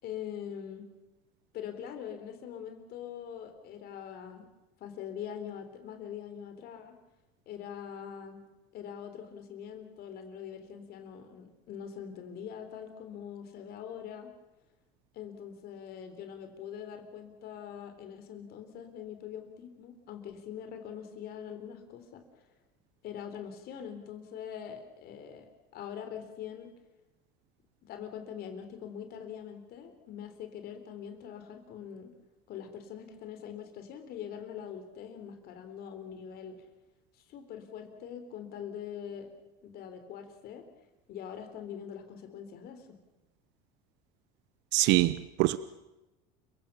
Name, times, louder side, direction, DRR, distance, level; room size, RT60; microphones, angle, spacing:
voice 1, 0.0-0.9 1.5-4.4 4.8-6.9 7.5-8.4 8.7-14.3 15.1-22.4 23.0-26.7 27.8-32.1 32.5-36.6 37.1-39.3 39.6-40.6 41.1-42.9, left 8 dB, 55° left, 7 dB, 3.6 m, -43 dB
voice 2, 44.7-45.6, right 18 dB, 65° right, 16 dB, 0.8 m, -24 dB
29.5 x 16.5 x 7.0 m, 1.0 s
cardioid pair, 130°, 19 cm